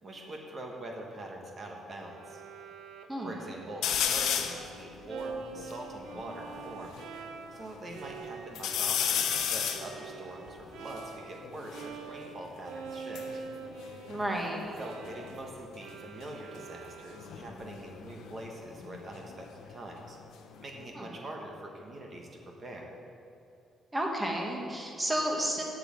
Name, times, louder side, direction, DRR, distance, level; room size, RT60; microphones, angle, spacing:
voice 1, 0.0-2.4 3.2-6.9 7.5-9.2 9.5-13.4 14.8-20.2 20.6-22.9, right 1 dB, 30° right, 0 dB, 1.3 m, -43 dB
Bowed string instrument, 2.1-11.5 11.7-17.5, right 5 dB, 80° right, 0.7 m, -45 dB
sound 1, 3.8-4.7 5.2-5.3 5.5-7.1 7.6-8.2 8.6-11.9 12.9-14.8 15.0-15.5 17.1-19.7 20.1-20.9, left 9 dB, 80° left, 0.8 m, -34 dB
voice 2, 14.1-14.6 20.9-21.1 23.9-25.6, right 1 dB, 10° right, 0 dB, 1.5 m, -31 dB
8.2 x 7.4 x 8.6 m, 2.6 s
cardioid pair, 160°, 0 cm